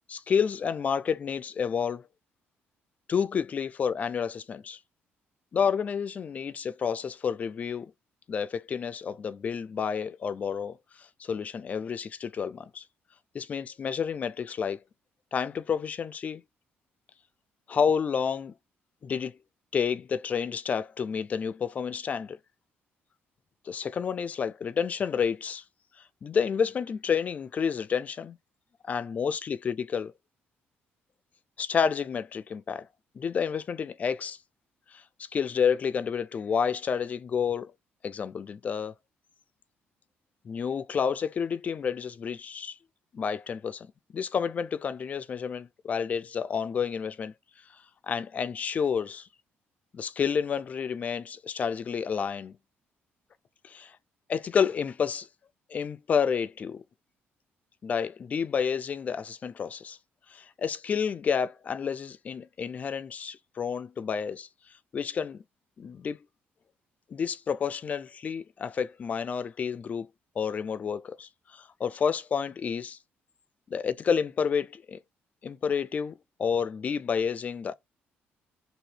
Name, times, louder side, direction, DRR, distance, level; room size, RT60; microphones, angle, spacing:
voice 1, 0.1-2.0 3.1-4.8 5.5-7.9 8.3-12.8 13.3-14.8 15.3-16.4 17.7-18.5 19.0-19.3 19.7-22.4 23.7-25.6 26.2-28.4 28.8-30.1 31.6-32.9 33.2-34.4 34.9-35.0 35.3-37.7 38.0-38.9 40.4-42.8 43.1-43.9 44.1-47.3 48.1-49.3 49.9-52.6 53.6-53.9 54.3-55.3 55.7-56.8 57.8-60.0 60.3-64.5 64.9-65.4 65.8-66.2 67.1-70.1 70.4-73.0 73.7-75.0 75.4-77.7, left 6 dB, 35° left, 0.3 m, -30 dB
2.8 x 2.7 x 3.2 m
cardioid pair, 135°, 4 cm